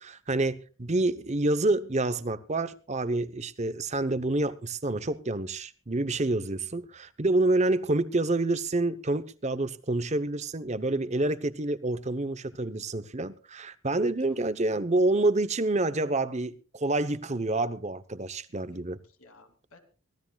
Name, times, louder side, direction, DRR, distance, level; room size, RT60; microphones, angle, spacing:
voice 1, 0.0-19.0, right 2 dB, 35° right, 0.9 m, -28 dB
voice 2, 18.5-19.8, left 2 dB, 85° left, 3.1 m, -57 dB
24.0 x 17.0 x 2.4 m
head